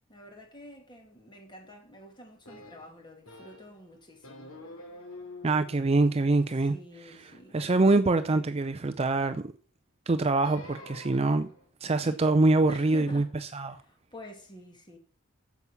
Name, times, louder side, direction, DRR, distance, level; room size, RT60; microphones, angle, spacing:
voice 1, 0.1-4.6 6.2-7.6 12.0-12.3 12.7-13.3 13.6-15.0, equal, 20° left, 2.3 m, -48 dB
sound 1, 2.5-3.8 4.2-8.5 10.3-11.7, left 2 dB, 80° left, 3.0 m, -49 dB
voice 2, 5.4-6.7 7.5-9.5 10.1-11.5 11.8-13.2 13.5-13.8, right 2 dB, 30° right, 0.4 m, -24 dB
8.2 x 7.2 x 7.0 m
head